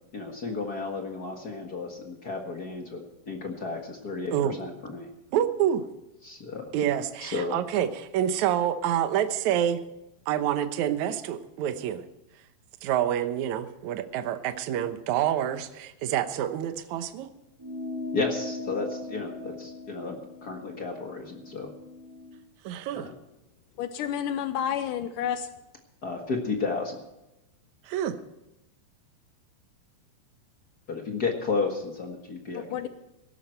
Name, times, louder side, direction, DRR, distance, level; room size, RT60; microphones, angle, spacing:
voice 1, 0.1-5.1 6.2-6.7 7.2-7.5 18.1-21.7 22.9-23.1 26.0-27.0 30.9-32.9, left 4 dB, 60° left, 2 dB, 0.9 m, -33 dB
voice 2, 5.3-5.8 6.7-9.8 10.3-12.0 12.8-17.3 22.6-23.1 27.8-28.2, right 10 dB, 70° right, 10 dB, 1.9 m, -27 dB
sound 1, 17.6-22.4, left 2 dB, 5° right, 2.2 m, -39 dB
voice 3, 23.8-25.5 32.5-32.9, left 9 dB, 90° left, 11 dB, 1.8 m, -30 dB
17.0 x 12.5 x 4.5 m, 0.92 s
omnidirectional pair, 4.5 m